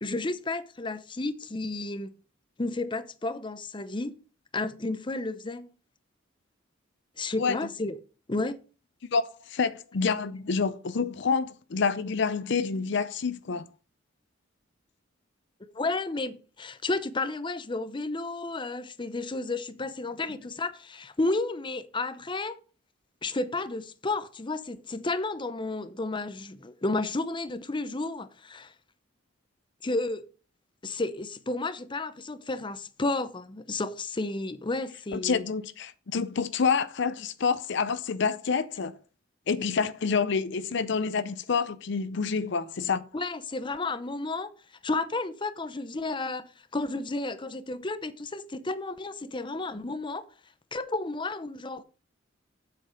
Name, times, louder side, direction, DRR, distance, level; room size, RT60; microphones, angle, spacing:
voice 1, 0.0-2.1 2.6-4.2 4.5-5.7 7.2-8.0 8.3-8.6 15.7-22.6 23.2-28.7 29.8-30.2 30.8-35.4 43.1-44.5 44.8-50.3 50.7-51.8, left 2 dB, 25° left, 0.7 m, -32 dB
voice 2, 9.1-13.7 35.1-38.9 39.5-43.0, left 5 dB, 65° left, 0.6 m, -28 dB
7.9 x 7.6 x 5.1 m
head